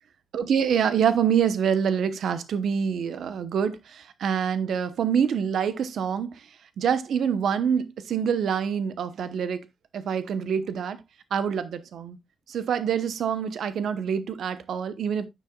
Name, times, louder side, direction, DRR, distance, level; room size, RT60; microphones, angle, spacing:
voice 1, 0.3-6.4 6.8-9.6 9.9-11.0 11.3-12.2 12.5-15.2, right 7 dB, 75° right, 1.0 m, -26 dB
9.8 x 7.3 x 2.3 m
wide cardioid pair, 180°, 0 cm